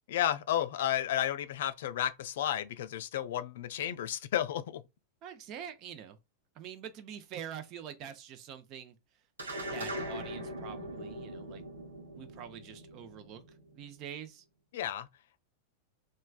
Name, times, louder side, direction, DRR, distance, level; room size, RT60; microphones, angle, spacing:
voice 1, 0.1-4.8 14.7-15.1, left 11 dB, 70° left, 0.3 m, -32 dB
voice 2, 5.2-6.2 6.6-8.9 9.7-11.6 12.1-13.4 13.7-14.4, right 9 dB, 45° right, 0.6 m, -45 dB
sound 1, 9.4-14.0, equal, 90° right, 0.7 m, -41 dB
3.1 x 2.2 x 2.3 m
hypercardioid pair, 100°, 0 cm